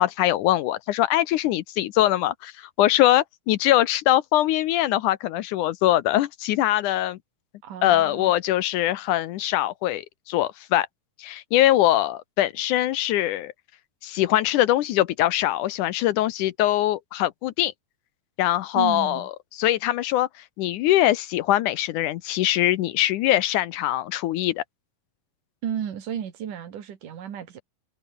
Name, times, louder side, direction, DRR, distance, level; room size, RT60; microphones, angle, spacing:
voice 1, 0.0-7.2 7.8-10.9 11.2-13.5 14.0-17.7 18.4-19.3 19.6-20.3 20.6-24.6, left 14 dB, 75° left, 2.1 m, -22 dB
voice 2, 7.6-8.3 18.7-19.3 25.6-27.6, right 9 dB, 65° right, 3.8 m, -33 dB
omnidirectional pair, 4.0 m